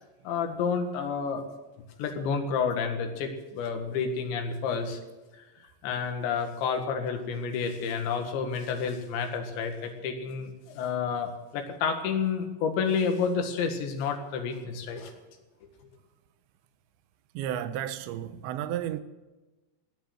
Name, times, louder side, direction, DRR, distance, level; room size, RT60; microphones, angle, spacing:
voice 1, 0.3-1.4 2.0-5.0 5.8-15.1, left 6 dB, 90° left, 4.1 m, -30 dB
voice 2, 17.3-19.0, right 11 dB, 90° right, 3.1 m, -32 dB
18.0 x 11.0 x 6.4 m
omnidirectional pair, 5.0 m